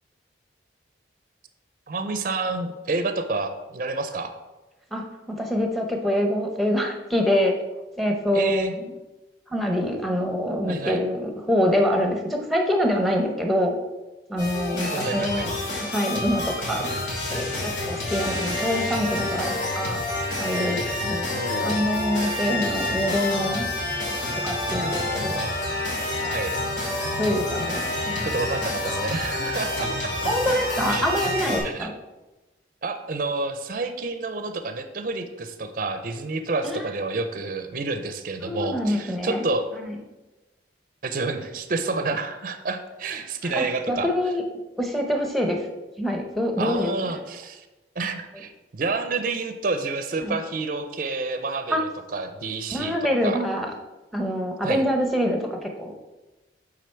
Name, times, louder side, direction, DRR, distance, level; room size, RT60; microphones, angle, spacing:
voice 1, 1.9-4.3 8.3-8.7 10.7-11.0 14.9-15.5 21.3-21.8 26.3-26.6 28.2-30.1 30.9-31.0 31.6-31.9 32.8-39.7 41.0-44.1 46.6-47.7 48.0-53.0 53.2-53.4 54.6-54.8, right 3 dB, 45° right, 8 dB, 0.4 m, -29 dB
voice 2, 4.9-7.6 8.0-8.9 9.5-13.8 14.3-15.5 15.8-16.9 17.3-20.0 20.4-21.4 21.6-23.7 24.4-25.4 26.2-26.4 27.2-28.4 30.2-31.9 36.6-36.8 38.4-39.4 39.8-39.9 43.4-44.4 44.8-45.7 46.0-47.2 50.2-50.4 51.7-51.8 52.7-53.7 54.1-55.9, equal, ahead, 2 dB, 0.7 m, -25 dB
sound 1, 14.4-31.6, left 2 dB, 65° left, 2.6 m, -28 dB
8.4 x 3.9 x 4.4 m, 1.1 s
head